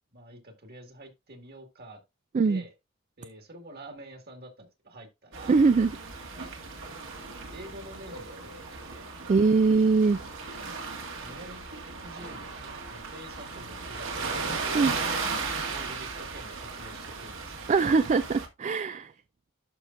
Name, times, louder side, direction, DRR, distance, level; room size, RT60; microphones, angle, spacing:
voice 1, 0.1-2.0 2.4-2.7 3.2-5.6 6.3-6.8 7.5-9.2 10.9-11.7 12.0-12.5 12.9-17.8, right 1 dB, 50° right, 2.0 m, -47 dB
sound 1, 5.3-18.5, right 4 dB, 65° right, 1.9 m, -36 dB
voice 2, 5.5-5.9 9.3-10.2 14.7-14.9 17.7-19.1, right 4 dB, 35° right, 0.3 m, -22 dB
11.5 x 5.1 x 2.6 m
head